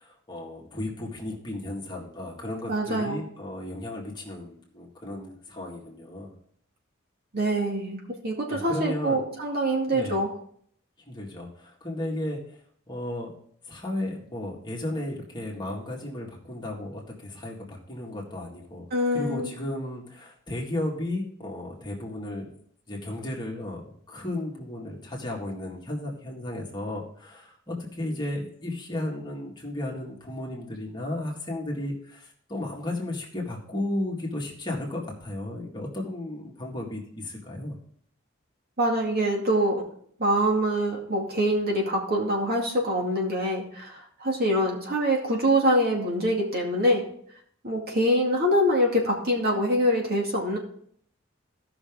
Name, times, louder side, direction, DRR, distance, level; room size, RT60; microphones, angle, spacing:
voice 1, 0.0-6.4 8.5-9.2 9.9-10.2 11.1-12.4 12.9-13.3 13.7-18.9 19.1-22.5 22.9-37.8, left 1 dB, 20° left, -2 dB, 2.0 m, -34 dB
voice 2, 2.7-3.2 7.3-10.3 18.9-19.5 38.8-39.8 40.2-47.0 47.6-50.6, equal, 50° right, -1 dB, 2.4 m, -24 dB
16.0 x 6.0 x 3.7 m, 0.62 s
head